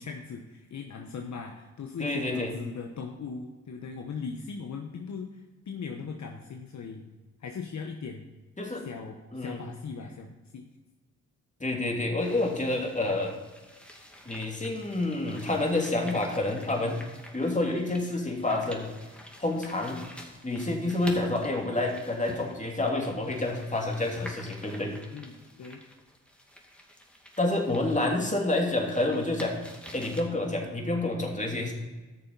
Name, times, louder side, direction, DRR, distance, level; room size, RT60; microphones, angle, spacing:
voice 1, 0.0-7.1 7.4-8.3 8.7-10.6 25.1-25.8, left 5 dB, 55° left, 3 dB, 1.1 m, -39 dB
voice 2, 2.0-2.5 8.6-8.9 9.3-9.6 11.6-13.3 14.2-17.0 17.3-18.9 19.4-20.0 20.4-24.9 27.4-29.6 29.9-31.7, left 2 dB, 20° left, 1 dB, 2.8 m, -28 dB
sound 1, 12.2-30.2, equal, 5° left, 2.2 m, -48 dB
14.0 x 6.7 x 4.1 m, 1.2 s
supercardioid pair, 50°, 34 cm